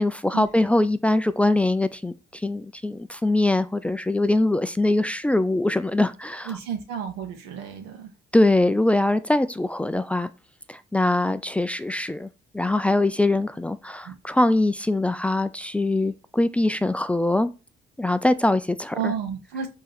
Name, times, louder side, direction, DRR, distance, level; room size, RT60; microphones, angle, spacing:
voice 1, 0.0-6.5 8.3-10.3 10.7-12.3 12.5-17.5 18.0-19.1, left 2 dB, 5° left, 0.4 m, -22 dB
voice 2, 6.4-8.1 14.0-14.1 18.9-19.7, right 7 dB, 90° right, 1.8 m, -31 dB
5.4 x 3.8 x 5.9 m
cardioid pair, 110°, 17 cm